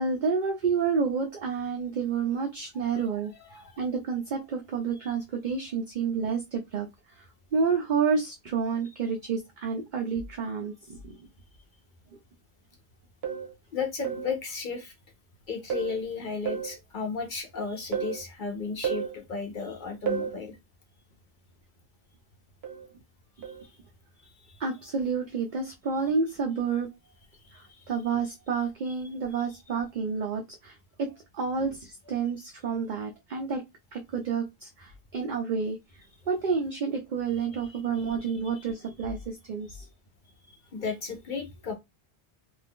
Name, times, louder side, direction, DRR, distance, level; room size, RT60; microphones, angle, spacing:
voice 1, 0.0-3.3 3.8-6.9 7.5-11.2 24.6-26.9 27.9-31.1 31.3-33.6 33.9-35.8 36.3-39.9, right 5 dB, 55° right, 0.7 m, -29 dB
voice 2, 2.7-3.8 13.7-14.9 15.5-20.6 23.4-23.8 24.2-24.7 27.3-27.9 28.9-29.0 37.3-38.7 39.6-39.7 40.5-41.7, left 5 dB, 55° left, 0.8 m, -36 dB
sound 1, 13.2-13.5 14.0-14.4 15.7-16.0 16.5-16.8 17.9-18.2 18.8-19.2 20.1-20.4 22.6-22.9 23.4-23.6, right 7 dB, 80° right, 1.0 m, -31 dB
2.6 x 2.3 x 3.5 m
omnidirectional pair, 1.0 m